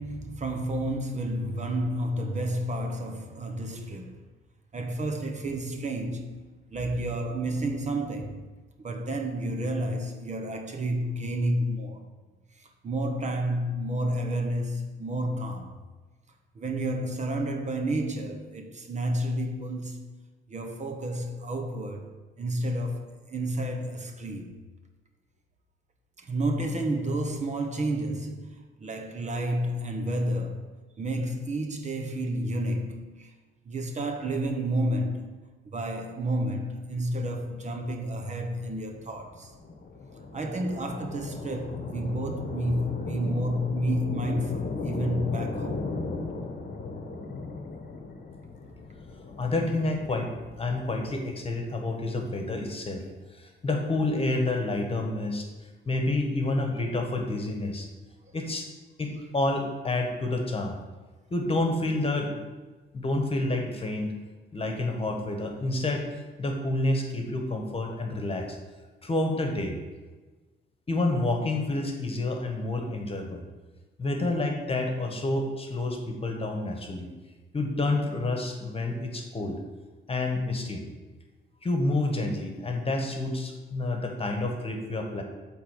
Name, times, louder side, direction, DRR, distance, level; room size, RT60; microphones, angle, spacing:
voice 1, 0.0-4.2 4.7-8.4 8.8-12.0 12.6-15.7 16.5-20.0 20.5-24.7 26.2-30.7 31.0-33.3 33.7-35.4 35.6-39.5 40.3-45.9 58.3-58.4, right 1 dB, 35° right, 0.9 m, -30 dB
sound 1, 37.4-51.1, left 3 dB, 45° left, 1.0 m, -37 dB
voice 2, 49.4-50.3 50.6-55.5 55.8-57.9 58.3-58.7 59.0-60.8 61.3-62.4 62.9-64.1 64.5-68.6 69.0-69.8 70.9-73.4 74.0-77.1 77.5-79.6 80.1-80.8 81.6-85.2, left 2 dB, 30° left, 1.3 m, -29 dB
8.1 x 3.6 x 6.7 m
cardioid pair, 90°, 20 cm